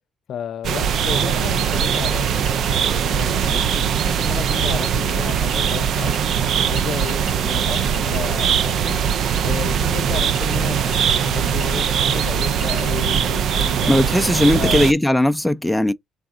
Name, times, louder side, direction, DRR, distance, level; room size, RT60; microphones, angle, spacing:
voice 1, 0.3-6.1 6.6-9.0 9.4-13.9 14.5-14.9, left 9 dB, 70° left, 0.5 m, -32 dB
sound 1, 0.6-14.9, right 8 dB, 70° right, 0.4 m, -21 dB
sound 2, 1.4-13.4, right 3 dB, 85° right, 2.7 m, -40 dB
voice 2, 13.9-15.9, left 1 dB, 5° left, 0.4 m, -18 dB
4.0 x 3.5 x 3.6 m
cardioid pair, 90°, 0 cm